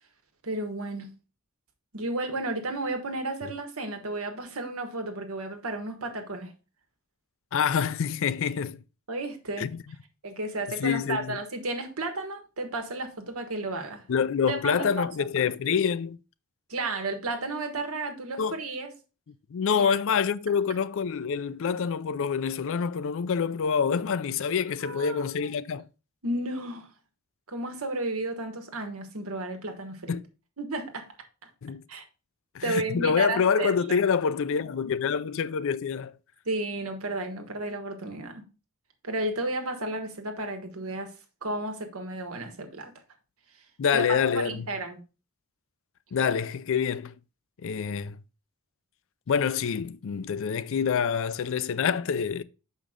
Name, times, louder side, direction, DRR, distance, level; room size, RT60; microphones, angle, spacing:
voice 1, 0.4-1.1 1.9-6.5 9.1-9.7 10.2-14.0 14.5-15.1 16.7-18.9 19.7-19.9 24.8-25.5 26.2-26.9 27.5-30.2 30.6-31.1 31.4-31.5 31.9-32.0 32.6-34.1 36.4-38.4 39.0-41.1 41.4-42.9 43.9-45.0, right 2 dB, 85° right, 1.4 m, -33 dB
voice 2, 7.5-8.8 9.6-9.7 10.8-11.4 14.1-16.2 18.4-18.6 19.5-25.8 30.1-30.2 31.6-31.8 32.5-36.1 43.8-44.7 46.1-47.1 47.6-48.2 49.3-52.4, left 6 dB, 65° left, 0.4 m, -26 dB
6.5 x 5.2 x 3.6 m
head